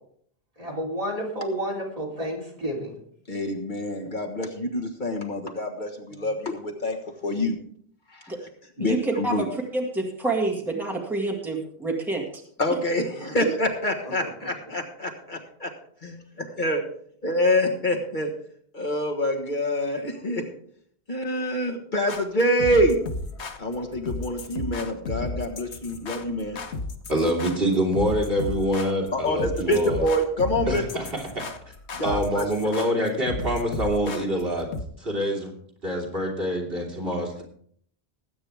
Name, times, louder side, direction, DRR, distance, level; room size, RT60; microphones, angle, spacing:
voice 1, 0.6-2.9, equal, 35° right, -2 dB, 3.5 m, -30 dB
voice 2, 3.3-7.0 7.2-7.6 8.1-8.3 8.8-9.5 12.6-15.1 16.0-16.2 16.6-16.8 17.2-18.3 18.7-20.5 21.1-23.0 23.6-26.6 29.1-30.8 31.9-32.4, equal, 50° left, 1 dB, 1.7 m, -26 dB
voice 3, 8.8-9.5 9.7-12.2, right 2 dB, ahead, 0 dB, 1.9 m, -27 dB
sound 1, 22.1-34.8, left 3 dB, 90° left, 1.4 m, -34 dB
voice 4, 27.1-30.1 30.7-31.5 32.0-34.7 35.0-35.5 35.8-37.4, equal, 60° right, -1 dB, 3.0 m, -25 dB
19.5 x 8.8 x 3.5 m, 0.63 s
omnidirectional pair, 1.1 m